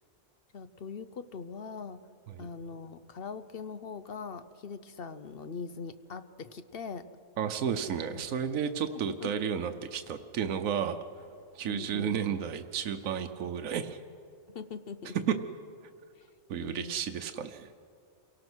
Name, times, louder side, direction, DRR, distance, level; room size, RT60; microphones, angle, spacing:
voice 1, 0.5-2.0 2.4-7.0 8.1-8.2 9.2-9.3 11.6-12.4 14.5-15.2 16.2-16.3 16.6-17.0 17.4-17.5, left 5 dB, 50° left, 12 dB, 0.8 m, -41 dB
voice 2, 7.4-11.0 11.5-14.0 16.5-17.7, right 8 dB, 80° right, 7 dB, 1.2 m, -32 dB
28.0 x 18.0 x 6.2 m, 2.4 s
omnidirectional pair, 1.4 m